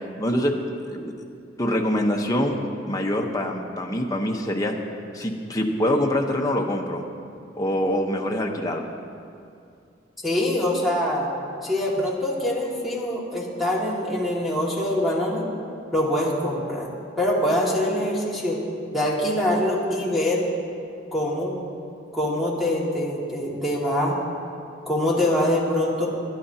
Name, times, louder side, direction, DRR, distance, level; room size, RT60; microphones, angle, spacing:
voice 1, 0.2-1.1 1.6-2.6 2.8-4.7 5.1-7.0 7.6-8.8 12.0-12.1, left 1 dB, 20° left, 0 dB, 1.0 m, -25 dB
voice 2, 10.2-11.3 11.6-15.4 15.9-16.9 17.2-18.6 18.9-20.5 21.1-21.6 22.1-24.2 24.9-26.1, left 1 dB, ahead, -5 dB, 2.0 m, -24 dB
20.5 x 11.5 x 2.8 m, 2.5 s
head